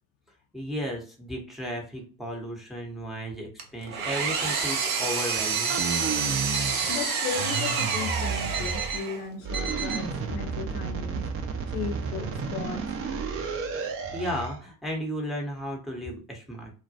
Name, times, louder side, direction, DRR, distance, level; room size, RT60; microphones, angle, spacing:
voice 1, 0.5-5.7 13.8-16.7, equal, ahead, 0.7 m, -34 dB
Engine, 3.6-9.3, right 5 dB, 90° right, 0.6 m, -29 dB
Alarm, 4.3-5.0 5.5-6.1 6.5-7.1 7.5-8.1 8.5-9.0 9.5-10.0, right 6 dB, 65° right, 1.0 m, -34 dB
sound 1, 5.7-7.0 7.3-9.0 9.4-14.6, right 5 dB, 35° right, 0.5 m, -32 dB
voice 2, 6.7-11.3 11.7-12.9, left 6 dB, 60° left, 0.6 m, -36 dB
2.2 x 2.1 x 2.6 m
hypercardioid pair, 65°, 42 cm